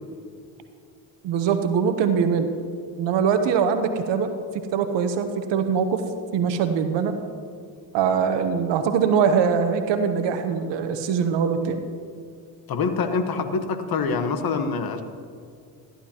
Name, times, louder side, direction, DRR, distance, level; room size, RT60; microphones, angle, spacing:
voice 1, 1.2-2.5 3.0-4.3 4.7-6.0 6.3-7.2 7.9-11.8, right 6 dB, 65° right, 8 dB, 1.0 m, -22 dB
voice 2, 12.7-15.0, left 4 dB, 50° left, 8 dB, 1.3 m, -25 dB
14.0 x 11.5 x 2.9 m, 2.3 s
supercardioid pair, 70°, 47 cm